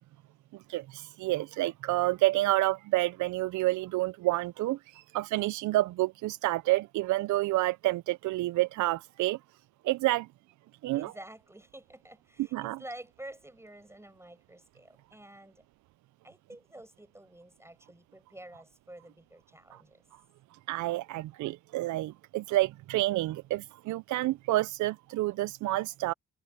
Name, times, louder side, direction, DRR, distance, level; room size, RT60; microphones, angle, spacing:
voice 1, 0.7-9.4 9.8-10.3 10.8-11.1 12.5-12.8 20.7-26.1, right 17 dB, 75° right, 0.5 m, -29 dB
voice 2, 10.9-15.6 16.2-20.0, right 1 dB, 10° right, 7.9 m, -49 dB
cardioid pair, 90°, 30 cm